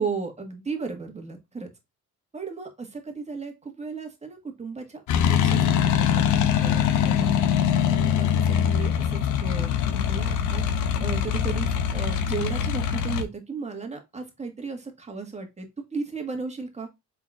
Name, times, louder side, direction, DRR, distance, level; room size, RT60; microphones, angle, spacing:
voice 1, 0.0-1.7 2.3-5.0 5.4-6.3 6.6-7.3 7.9-10.6 11.0-16.9, right 4 dB, 20° right, 1.5 m, -35 dB
sound 1, 5.1-13.2, left 8 dB, 80° left, 0.7 m, -23 dB
4.8 x 3.8 x 2.4 m
cardioid pair, 90°, 30 cm